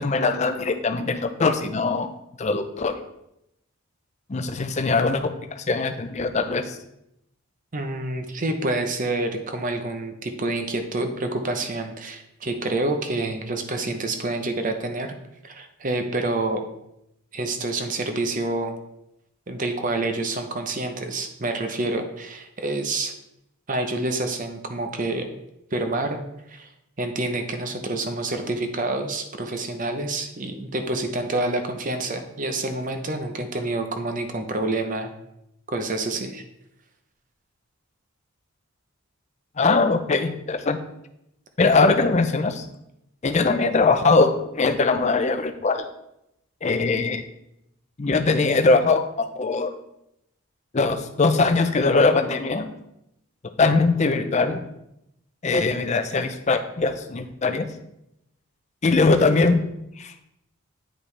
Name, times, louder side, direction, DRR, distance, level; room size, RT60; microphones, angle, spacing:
voice 1, 0.0-2.1 2.4-2.9 4.3-6.8 39.6-40.8 41.6-42.7 43.2-45.9 46.6-47.2 48.0-49.0 49.4-49.7 50.7-52.7 53.6-54.6 55.4-57.7 58.8-59.7 60.0-60.1, left 3 dB, 30° left, 8 dB, 0.5 m, -21 dB
voice 2, 7.7-15.1 15.4-16.6 17.3-18.7 19.5-23.1 23.7-25.3 25.7-26.2 26.5-26.7 27.0-35.1 35.7-36.4, right 2 dB, 35° right, 6 dB, 0.7 m, -27 dB
8.7 x 5.1 x 3.3 m, 0.83 s
head